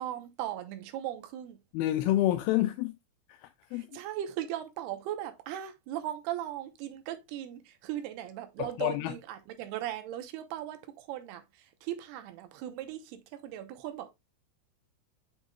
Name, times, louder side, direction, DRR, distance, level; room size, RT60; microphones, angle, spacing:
voice 1, 0.0-1.6 3.7-14.1, right 12 dB, 80° right, 3.0 m, -38 dB
voice 2, 1.7-3.0 3.4-3.9 8.6-9.1, left 14 dB, 85° left, 2.3 m, -28 dB
8.1 x 5.9 x 2.3 m
omnidirectional pair, 4.6 m